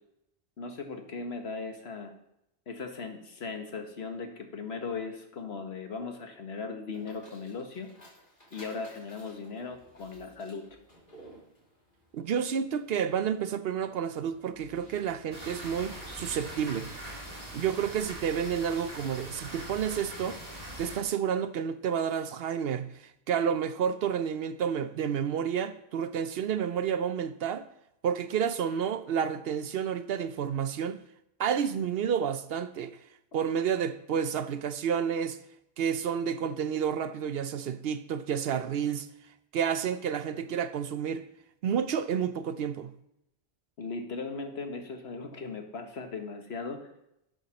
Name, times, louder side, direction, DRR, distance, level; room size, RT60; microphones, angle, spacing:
voice 1, 0.6-2.1 2.7-7.9 8.5-10.6 43.8-46.9, left 4 dB, 70° left, 1.5 m, -38 dB
sound 1, 6.9-16.9, equal, 50° left, 4.0 m, -55 dB
voice 2, 12.1-16.9 17.5-20.4 20.8-27.7 28.0-31.0 31.4-33.0 33.3-35.4 35.8-39.1 39.5-41.2 41.6-42.9, right 8 dB, 65° right, 0.8 m, -30 dB
sound 2, 15.3-21.0, right 1 dB, 35° right, 2.3 m, -42 dB
8.0 x 7.2 x 6.2 m
omnidirectional pair, 1.1 m